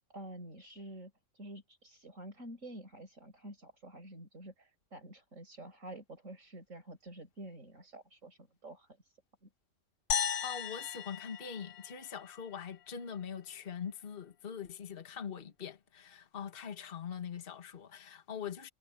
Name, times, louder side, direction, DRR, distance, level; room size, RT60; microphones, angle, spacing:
voice 1, 0.1-9.5, right 1 dB, 55° right, 6.6 m, -49 dB
sound 1, 10.1-12.5, left 8 dB, 70° left, 1.4 m, -36 dB
voice 2, 10.4-18.7, left 7 dB, 40° left, 1.5 m, -43 dB
omnidirectional pair, 1.5 m